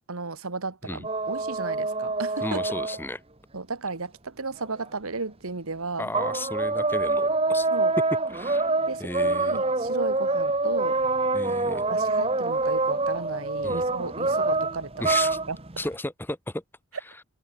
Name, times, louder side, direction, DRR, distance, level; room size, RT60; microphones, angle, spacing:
voice 1, 0.0-2.6 3.5-6.1 7.7-7.9 8.9-11.0 11.5-15.1 15.5-15.6, right 3 dB, 80° right, 1.7 m, -34 dB
sound 1, 1.0-3.0 4.6-4.7 6.1-15.9, right 3 dB, 25° right, 1.5 m, -26 dB
voice 2, 2.4-3.2 6.0-7.7 8.3-8.7 9.0-9.6 11.3-11.9 13.6-13.8 15.0-15.4 15.8-16.6, left 1 dB, 10° left, 0.9 m, -34 dB
head